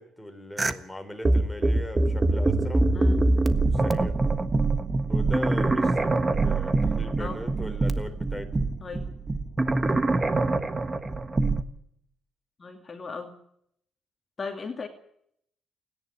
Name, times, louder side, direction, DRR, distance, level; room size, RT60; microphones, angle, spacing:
voice 1, 0.0-2.9 3.6-4.2 5.1-6.2 6.4-8.6, left 1 dB, ahead, 5 dB, 4.0 m, -38 dB
sound 1, 0.6-0.7 1.3-11.6, right 2 dB, 25° right, 1.5 m, -24 dB
voice 2, 12.6-13.3 14.4-14.9, left 4 dB, 35° left, 4 dB, 2.5 m, -36 dB
29.0 x 10.5 x 8.7 m, 0.72 s
cardioid pair, 90°, 0 cm